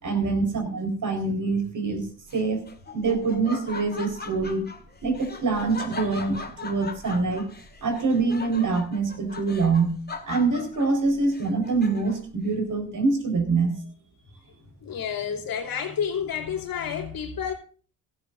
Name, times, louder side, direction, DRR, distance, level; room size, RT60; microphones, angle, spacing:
voice 1, 0.0-2.0 2.3-2.6 2.9-4.6 5.0-7.4 7.8-10.0 10.3-13.8, right 4 dB, 45° right, 4.5 m, -25 dB
Laughter, 2.3-12.3, left 4 dB, 25° left, 2.2 m, -40 dB
voice 2, 14.8-17.5, left 7 dB, 55° left, 3.1 m, -30 dB
16.0 x 14.0 x 2.6 m
hypercardioid pair, 50°, 42 cm